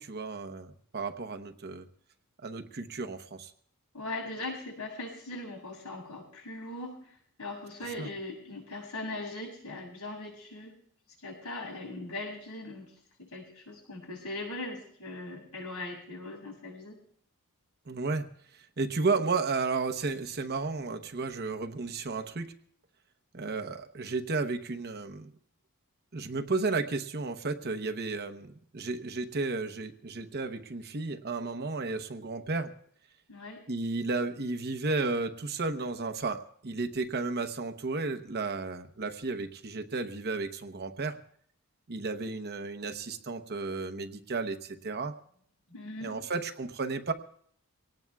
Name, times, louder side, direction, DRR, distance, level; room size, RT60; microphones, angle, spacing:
voice 1, 0.0-1.9 2.4-3.5 8.0-8.1 17.9-18.3 18.8-22.5 23.3-25.3 26.1-32.7 33.7-41.2 41.9-45.2 46.0-47.1, right 3 dB, 50° right, 6 dB, 0.9 m, -33 dB
voice 2, 3.9-10.7 11.2-17.0 33.3-33.6 45.7-46.2, left 2 dB, 80° left, 0 dB, 6.8 m, -40 dB
24.5 x 18.5 x 2.3 m, 0.62 s
head